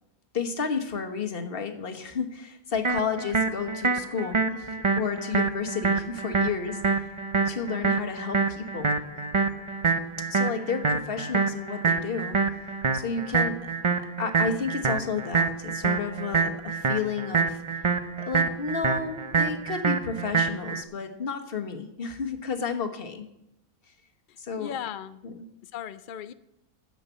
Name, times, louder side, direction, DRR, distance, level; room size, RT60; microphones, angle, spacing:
voice 1, 0.3-7.0 7.4-8.9 10.2-12.4 12.9-13.7 14.2-17.6 18.3-23.3 24.4-24.7 25.2-25.4, left 5 dB, 40° left, 5 dB, 1.4 m, -32 dB
sound 1, 2.8-20.8, right 4 dB, 40° right, 0.4 m, -26 dB
voice 2, 24.3-25.2 25.6-26.3, left 9 dB, 80° left, 13 dB, 0.4 m, -37 dB
10.5 x 7.6 x 8.1 m, 0.83 s
omnidirectional pair, 1.6 m